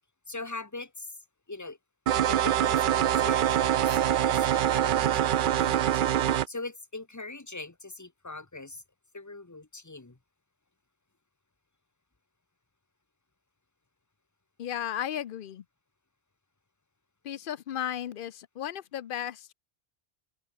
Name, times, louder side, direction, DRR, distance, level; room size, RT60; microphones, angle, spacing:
voice 1, 0.3-1.2 1.5-1.8 2.3-5.8 6.1-8.8 9.1-10.2, left 3 dB, 15° left, 1.2 m, -41 dB
sound 1, 2.1-6.5, right 11 dB, 60° right, 0.6 m, -24 dB
voice 2, 14.6-15.6 17.2-19.5, left 10 dB, 60° left, 0.7 m, -34 dB
omnidirectional pair, 1.1 m